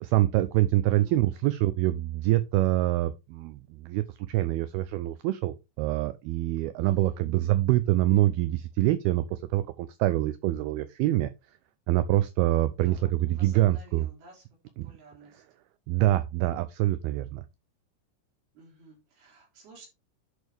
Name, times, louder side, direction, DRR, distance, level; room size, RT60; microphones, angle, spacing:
voice 1, 0.0-11.3 11.9-14.1 14.8-14.9 15.9-17.5, right 15 dB, 85° right, 2.2 m, -25 dB
voice 2, 6.8-7.2 12.8-14.4 14.8-15.4 18.6-19.9, right 3 dB, 60° right, 5.6 m, -52 dB
11.0 x 6.4 x 3.4 m
omnidirectional pair, 5.0 m